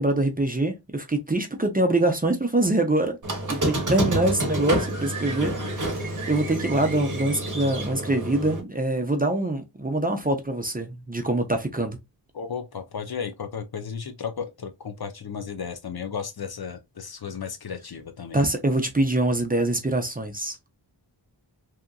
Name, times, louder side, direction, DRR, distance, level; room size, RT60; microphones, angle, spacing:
voice 1, 0.0-3.2 3.5-12.0 18.3-20.6, right 2 dB, 20° right, 0.6 m, -24 dB
Squeak, 3.2-8.6, right 1 dB, 45° right, 0.9 m, -28 dB
voice 2, 12.3-18.4, left 6 dB, 55° left, 0.6 m, -34 dB
2.8 x 2.4 x 2.3 m
wide cardioid pair, 50°, 44 cm